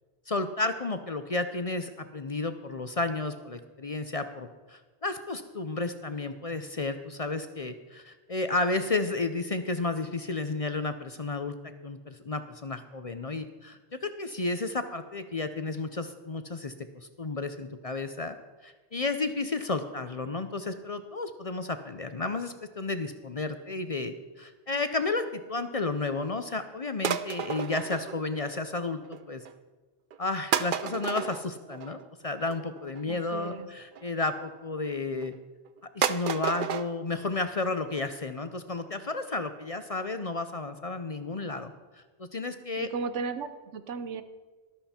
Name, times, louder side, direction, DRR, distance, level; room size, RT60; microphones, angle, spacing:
voice 1, 0.3-11.6 11.8-16.7 17.2-18.4 18.6-29.4 30.2-35.3 35.9-41.7 42.2-42.9, left 3 dB, 40° left, 9 dB, 0.6 m, -32 dB
sound 1, 27.0-28.7 29.0-29.5 30.1-30.2 30.5-34.1 34.8-35.3 35.7-35.8 36.0-36.9 37.2-37.3 37.6-37.7 38.0-38.1 38.4-38.5 38.9-39.0 39.2-39.3 39.7-39.8 40.1-40.2, right 8 dB, 55° right, 0.7 m, -32 dB
voice 2, 33.1-33.7 42.8-44.2, right 5 dB, 85° right, 11 dB, 1.2 m, -35 dB
13.5 x 12.5 x 4.3 m, 1.3 s
omnidirectional pair, 1.2 m